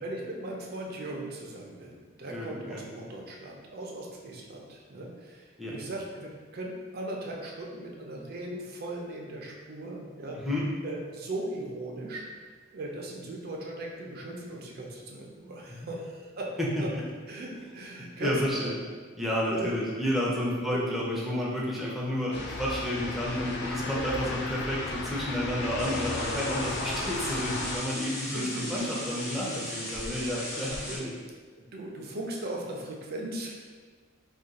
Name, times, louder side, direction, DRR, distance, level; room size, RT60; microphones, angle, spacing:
voice 1, 0.0-10.4 10.8-12.3 12.7-16.5 16.8-16.9 17.3-18.3 18.6-18.7 19.5-19.7 20.6-20.8 23.9-24.3 26.8-27.0 28.3-28.8 29.4-29.6 30.8-31.0 31.6-33.5, right 1 dB, 50° right, -1 dB, 0.5 m, -38 dB
voice 2, 2.3-2.8 5.6-5.8 10.4-10.7 15.7-15.9 16.6-16.7 16.9-17.0 18.0-18.7 19.2-31.1, left 1 dB, ahead, -6 dB, 0.5 m, -31 dB
sound 1, 22.3-27.8, left 2 dB, 60° left, 0.4 m, -35 dB
sound 2, 25.8-31.0, left 1 dB, 40° left, 1.1 m, -38 dB
2.4 x 2.2 x 4.0 m, 1.5 s
head